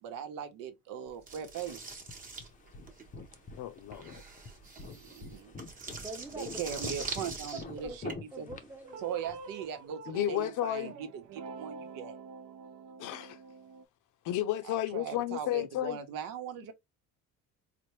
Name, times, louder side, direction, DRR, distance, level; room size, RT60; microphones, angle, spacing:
voice 1, 0.0-1.8 4.7-5.6 6.4-8.1 8.4-8.5 9.0-12.2 14.6-16.7, right 8 dB, 85° right, 0.9 m, -40 dB
blood sucker, 1.3-8.1, right 4 dB, 25° right, 1.0 m, -43 dB
sound 1, 1.5-9.7, left 4 dB, 25° left, 0.5 m, -48 dB
voice 2, 3.6-4.2 10.1-10.9 13.0-13.4 14.2-16.0, left 13 dB, 70° left, 0.6 m, -32 dB
voice 3, 6.0-6.6 7.5-8.0 8.3-9.3, right 2 dB, 5° right, 0.7 m, -44 dB
sound 2, 8.8-13.8, right 7 dB, 65° right, 0.6 m, -46 dB
4.2 x 2.2 x 3.0 m
cardioid pair, 140°, 32 cm